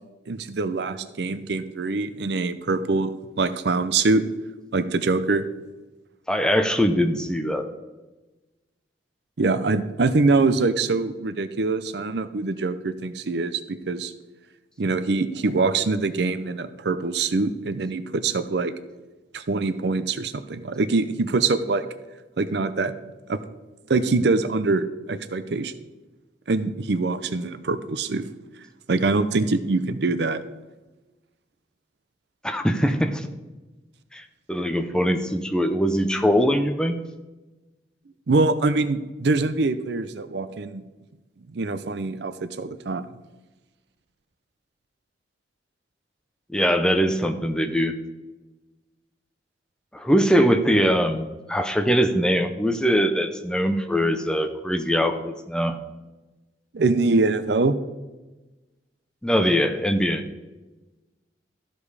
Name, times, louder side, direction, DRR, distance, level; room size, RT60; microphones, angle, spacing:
voice 1, 0.3-4.2 4.7-5.4 9.4-14.1 14.8-18.7 19.3-21.9 22.4-22.9 23.3-23.4 23.9-25.7 26.5-28.3 28.9-30.4 38.3-40.8 41.5-43.0 56.7-57.8, right 3 dB, 65° right, 12 dB, 0.6 m, -24 dB
voice 2, 6.3-7.7 32.4-33.3 34.1-37.0 46.5-47.9 49.9-55.8 59.2-60.2, equal, 5° left, 7 dB, 0.6 m, -22 dB
13.5 x 5.2 x 4.8 m, 1.1 s
head